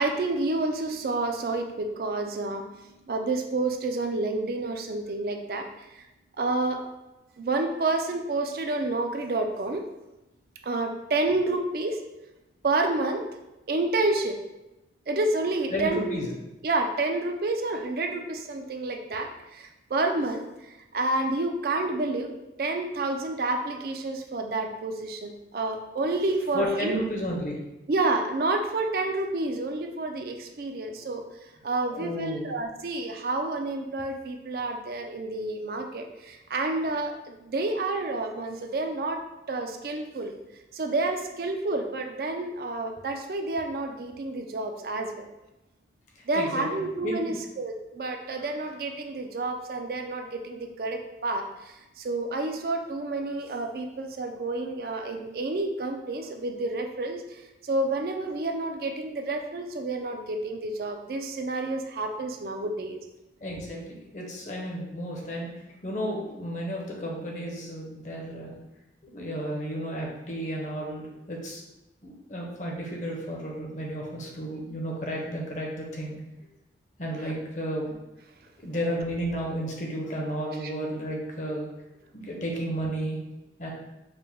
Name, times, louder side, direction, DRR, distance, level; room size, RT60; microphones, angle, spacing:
voice 1, 0.0-6.0 6.4-6.8 7.4-9.8 10.6-12.0 12.6-13.2 13.7-14.4 15.1-16.2 16.6-20.5 20.9-22.3 22.6-27.0 27.9-31.2 31.6-39.2 39.5-40.3 40.7-45.3 46.3-57.2 57.6-63.0 80.6-80.7, right 2 dB, 55° right, 4 dB, 0.4 m, -29 dB
voice 2, 15.7-16.3 26.5-27.5 32.0-32.5 46.3-47.4 63.4-65.5 65.8-68.6 69.0-71.6 72.0-76.2 77.0-77.9 78.6-81.7 82.1-83.2 83.6-83.7, equal, 45° left, -1 dB, 0.8 m, -32 dB
4.9 x 2.2 x 3.4 m, 0.96 s
head